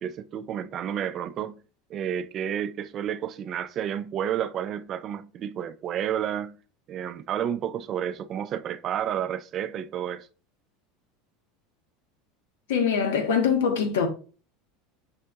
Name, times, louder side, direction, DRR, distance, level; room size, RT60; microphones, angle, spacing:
voice 1, 0.0-1.6 1.9-6.6 6.9-10.3, right 9 dB, 40° right, 0.3 m, -31 dB
voice 2, 12.7-14.1, left 6 dB, 90° left, 1.0 m, -23 dB
5.5 x 3.7 x 2.2 m
supercardioid pair, 125°, 0 cm